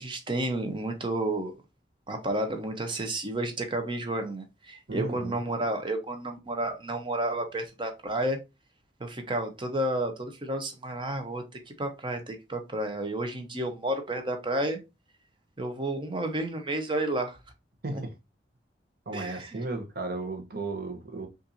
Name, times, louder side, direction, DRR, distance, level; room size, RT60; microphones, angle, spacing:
voice 1, 0.0-1.5 2.1-8.4 9.0-14.8 15.6-17.4 17.9-18.0 19.1-19.6, right 1 dB, 25° right, 0.8 m, -31 dB
voice 2, 4.9-5.4 17.8-18.1 19.1-21.3, right 2 dB, 55° right, 0.9 m, -34 dB
5.4 x 2.6 x 2.6 m
head